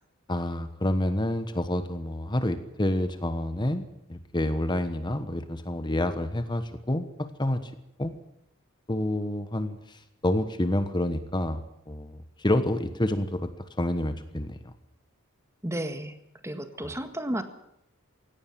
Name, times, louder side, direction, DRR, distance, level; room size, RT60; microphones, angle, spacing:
voice 1, 0.3-7.7 8.0-8.1 8.9-11.6 11.9-14.7 16.8-16.9, left 1 dB, 20° left, 10 dB, 1.2 m, -28 dB
voice 2, 15.6-16.2 16.4-17.4, right 1 dB, 15° right, 9 dB, 1.6 m, -32 dB
17.5 x 17.0 x 9.1 m, 0.78 s
head